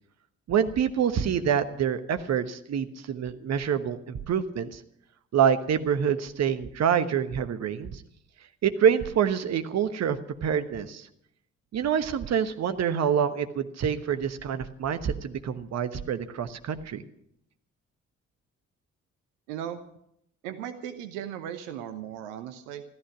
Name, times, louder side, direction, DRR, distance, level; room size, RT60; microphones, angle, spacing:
voice 1, 0.5-4.8 5.3-8.0 8.6-11.1 11.7-17.0, right 8 dB, 45° right, 10 dB, 1.2 m, -26 dB
voice 2, 19.5-19.8 20.4-22.8, right 10 dB, 70° right, 10 dB, 1.0 m, -37 dB
14.0 x 14.0 x 6.0 m, 0.74 s
figure-of-eight pair, 40°, 38 cm